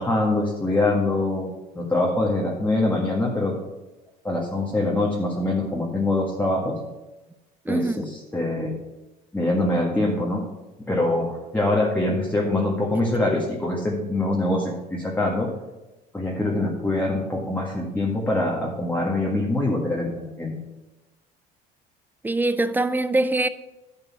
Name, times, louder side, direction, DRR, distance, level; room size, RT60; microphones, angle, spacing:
voice 1, 0.0-3.5 4.2-6.8 7.7-8.8 9.3-10.4 10.9-15.5 16.1-20.6, left 2 dB, 10° left, 1.9 m, -24 dB
voice 2, 7.7-8.1 22.2-23.5, right 2 dB, 10° right, 0.5 m, -23 dB
11.0 x 5.3 x 6.1 m
supercardioid pair, 100°, 20 cm